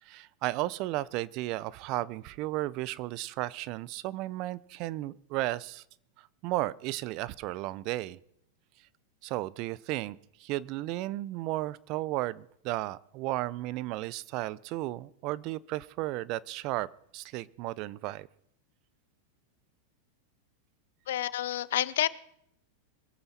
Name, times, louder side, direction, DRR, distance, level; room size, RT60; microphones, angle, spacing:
voice 1, 0.0-5.8 6.2-8.2 9.2-18.3, right 17 dB, 50° right, 22 dB, 0.6 m, -34 dB
voice 2, 21.1-22.1, left 12 dB, 75° left, 19 dB, 0.6 m, -29 dB
22.5 x 8.8 x 4.3 m, 0.73 s
hypercardioid pair, 115°, 0 cm